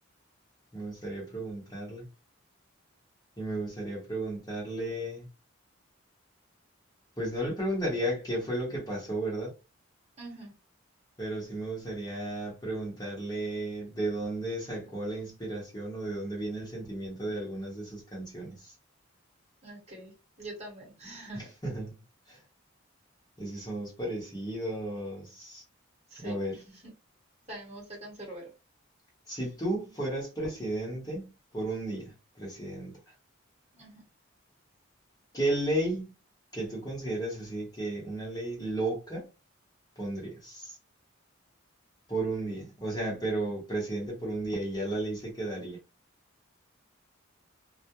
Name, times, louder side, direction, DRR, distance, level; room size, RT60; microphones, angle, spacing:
voice 1, 0.7-2.1 3.4-5.3 7.2-9.5 11.2-18.7 21.3-21.9 22.3-22.4 23.4-25.6 26.2-26.6 29.3-33.0 35.3-36.1 36.5-39.3 40.0-40.8 42.1-45.8, right 1 dB, 20° left, 0.8 m, -34 dB
voice 2, 10.2-10.5 19.6-21.5 26.1-26.3 26.7-26.8 27.5-28.5 33.7-34.0, right 1 dB, 30° right, 1.1 m, -44 dB
2.2 x 2.0 x 2.8 m
head